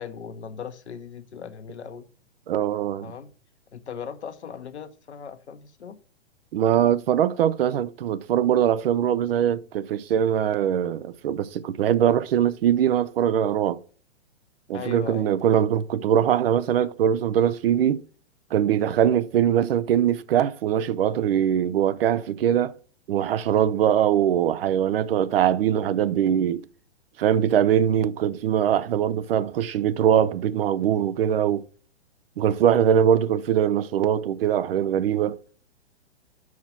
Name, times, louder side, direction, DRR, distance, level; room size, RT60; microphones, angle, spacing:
voice 1, 0.0-2.0 3.0-3.3 3.7-6.0 14.7-15.3, left 7 dB, 80° left, 1.0 m, -38 dB
voice 2, 2.5-3.1 6.5-13.8 14.7-18.0 18.5-22.7 23.1-26.6 27.2-31.6 32.4-35.4, right 9 dB, 55° right, 0.6 m, -22 dB
5.8 x 4.8 x 5.7 m
hypercardioid pair, 120°, 34 cm